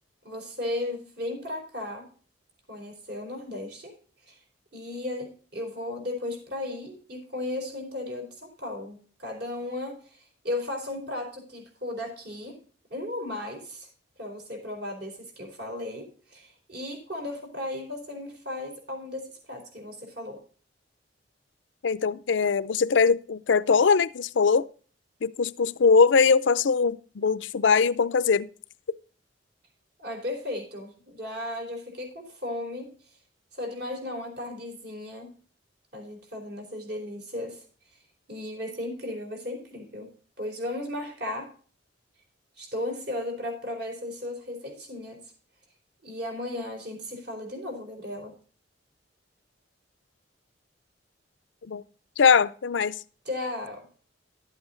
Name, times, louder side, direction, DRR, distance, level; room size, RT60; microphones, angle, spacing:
voice 1, 0.2-2.1 2.7-3.9 4.2-4.4 4.7-12.6 12.9-13.9 14.2-20.4 30.0-32.9 33.5-35.3 35.9-37.6 37.9-38.0 38.3-40.1 40.4-41.5 42.6-45.2 46.0-48.3 53.2-53.9, left 1 dB, 60° right, 4.3 m, -35 dB
voice 2, 21.8-24.7 25.2-28.5 51.7-51.8 52.2-52.9, left 5 dB, 70° left, 0.5 m, -21 dB
12.0 x 8.1 x 3.8 m
head